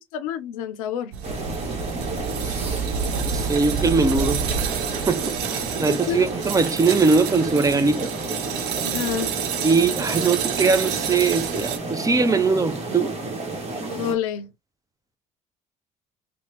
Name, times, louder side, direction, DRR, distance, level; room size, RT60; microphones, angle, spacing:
voice 1, 0.1-1.1 5.9-6.2 8.8-9.3 10.1-10.3 13.9-14.5, left 9 dB, 80° left, 0.5 m, -28 dB
sound 1, 1.1-11.8, right 7 dB, 70° right, 0.6 m, -29 dB
sound 2, 1.2-14.1, right 2 dB, 35° right, 1.2 m, -31 dB
voice 2, 3.2-4.4 5.1-8.1 9.6-13.2, right 4 dB, 20° right, 0.5 m, -21 dB
2.8 x 2.2 x 3.2 m
hypercardioid pair, 55°, 17 cm